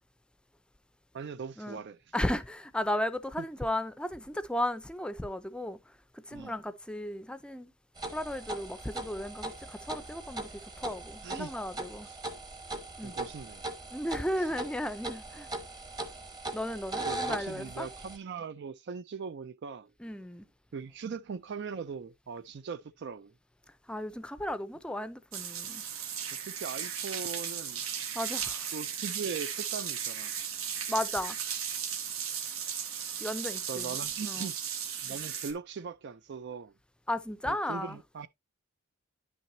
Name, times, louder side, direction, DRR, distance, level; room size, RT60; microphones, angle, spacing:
voice 1, 1.1-2.0 3.4-3.5 6.3-6.6 11.2-11.5 12.1-12.2 13.0-13.7 14.4-14.5 17.1-20.1 20.7-23.3 26.4-27.8 28.7-30.4 33.7-34.6 35.0-36.7 37.4-38.3, right 5 dB, 55° right, 0.4 m, -40 dB
voice 2, 2.1-7.7 8.1-12.1 13.0-13.1 13.9-15.5 16.5-17.9 20.0-20.5 23.9-25.8 28.1-28.7 30.9-31.4 33.2-34.0 34.2-34.5 37.1-38.0, left 1 dB, 5° left, 0.5 m, -35 dB
sound 1, 8.0-18.2, right 2 dB, 20° right, 1.0 m, -40 dB
sound 2, 25.3-35.5, right 8 dB, 80° right, 1.2 m, -36 dB
9.9 x 6.1 x 2.7 m
head